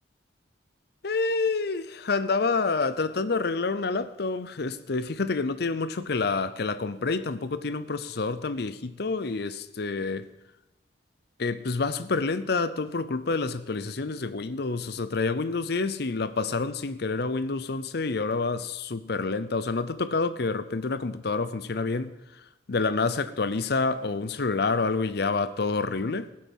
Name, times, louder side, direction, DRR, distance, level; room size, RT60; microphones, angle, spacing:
voice 1, 1.0-10.3 11.4-22.1 22.7-26.3, left 3 dB, 65° left, 0.7 m, -28 dB
18.0 x 7.7 x 5.5 m
head